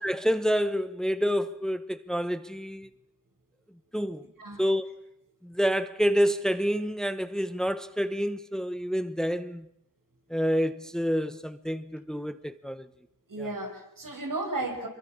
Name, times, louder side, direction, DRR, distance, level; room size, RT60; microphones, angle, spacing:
voice 1, 0.0-2.9 3.9-4.3 4.6-4.9 5.4-9.7 10.3-12.9, equal, ahead, 1.0 m, -28 dB
voice 2, 13.3-14.9, right 2 dB, 75° right, 5.7 m, -34 dB
24.5 x 22.5 x 7.3 m
cardioid pair, 55°, 33 cm